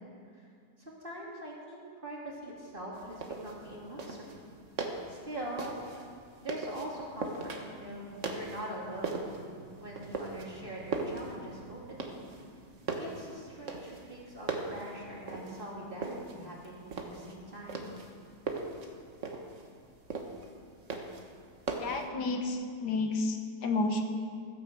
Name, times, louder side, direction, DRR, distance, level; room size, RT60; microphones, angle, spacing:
voice 1, 0.8-4.5 5.1-5.7 6.4-9.4 9.8-12.2 13.0-17.9, right 1 dB, 30° right, -4 dB, 3.0 m, -43 dB
sound 1, 2.9-22.1, right 3 dB, 50° right, 1.5 m, -40 dB
voice 2, 21.8-24.0, left 3 dB, 75° left, 5 dB, 1.7 m, -31 dB
14.5 x 9.7 x 7.6 m, 2.2 s
omnidirectional pair, 1.8 m